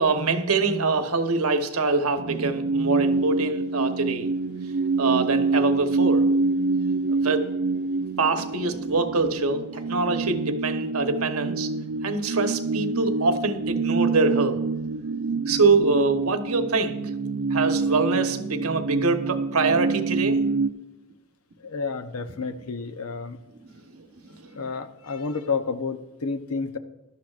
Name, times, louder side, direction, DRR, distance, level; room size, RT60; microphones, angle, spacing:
voice 1, 0.0-4.3 5.0-6.3 7.1-7.5 8.2-11.7 12.0-14.6 15.5-17.0 17.5-20.4 23.6-23.8 24.3-24.5, right 3 dB, 85° right, 1.1 m, -24 dB
sound 1, 2.2-20.7, right 3 dB, 60° right, 0.4 m, -26 dB
voice 2, 21.6-23.4 24.5-26.8, left 4 dB, 85° left, 0.8 m, -30 dB
16.5 x 11.5 x 2.5 m
head